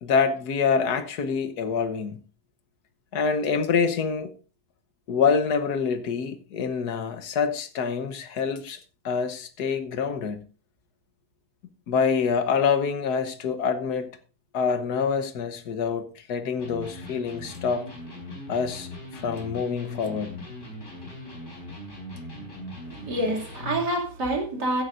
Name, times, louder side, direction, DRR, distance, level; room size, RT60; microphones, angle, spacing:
voice 1, 0.0-2.2 3.1-4.3 5.1-8.8 9.0-10.4 11.9-14.1 14.5-17.9 18.5-20.3, left 6 dB, 75° left, 1.6 m, -26 dB
Electric guitar, 16.6-23.9, left 1 dB, 45° left, 4.6 m, -40 dB
voice 2, 22.9-24.8, right 1 dB, 90° right, 3.3 m, -27 dB
14.5 x 10.5 x 2.6 m
omnidirectional pair, 1.7 m